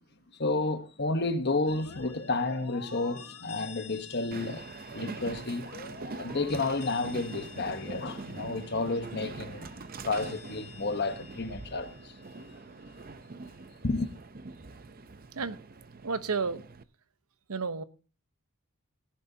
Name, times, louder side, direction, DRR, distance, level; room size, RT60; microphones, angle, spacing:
voice 1, 0.4-4.7 4.9-5.7 6.2-9.7 10.0-12.1 13.8-14.1, left 3 dB, 50° left, 1.1 m, -31 dB
sound 1, 1.7-13.2, left 5 dB, 75° left, 1.6 m, -49 dB
Train, 4.3-16.8, right 3 dB, 40° right, 0.6 m, -43 dB
voice 2, 16.0-16.6 17.5-17.8, right 4 dB, 80° right, 0.9 m, -31 dB
17.5 x 10.5 x 2.8 m
head